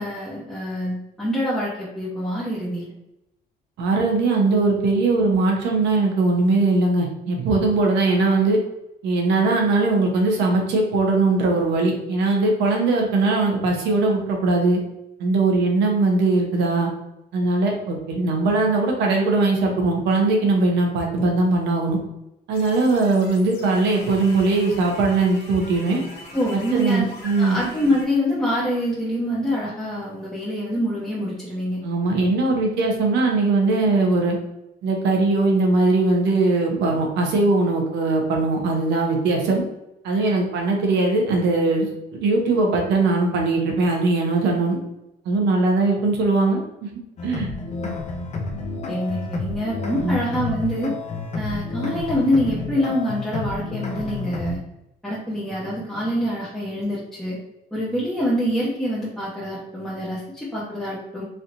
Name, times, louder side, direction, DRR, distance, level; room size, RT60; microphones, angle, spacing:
voice 1, 0.0-2.9 26.3-27.1 27.4-31.8 48.9-50.9 51.3-54.6 55.0-57.4 57.7-61.2, equal, 5° left, -8 dB, 0.8 m, -25 dB
voice 2, 3.8-8.6 9.0-14.8 15.2-16.9 17.3-22.0 22.5-26.0 26.5-27.6 31.8-34.4 34.8-39.6 40.0-44.8 45.2-46.9 47.2-47.5 50.0-50.2, right 3 dB, 85° right, 1 dB, 0.9 m, -20 dB
sound 1, 22.5-28.0, left 1 dB, 80° left, 0.9 m, -41 dB
sound 2, 47.2-54.5, left 3 dB, 40° left, 0.5 m, -30 dB
3.2 x 2.8 x 2.5 m, 0.89 s
cardioid pair, 135°, 17 cm